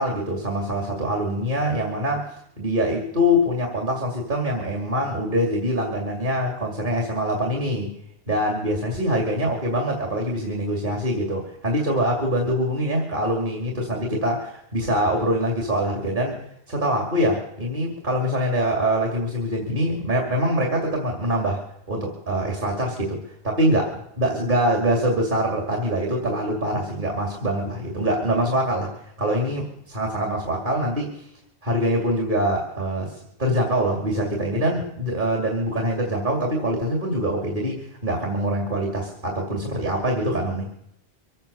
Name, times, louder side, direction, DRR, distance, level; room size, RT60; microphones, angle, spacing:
voice 1, 0.0-2.2 2.6-7.9 8.3-16.3 16.7-21.6 21.9-23.2 23.4-23.8 24.2-31.3 31.6-33.1 33.4-40.7, equal, 55° right, 1 dB, 2.9 m, -24 dB
24.0 x 8.8 x 6.9 m, 0.77 s
omnidirectional pair, 1.0 m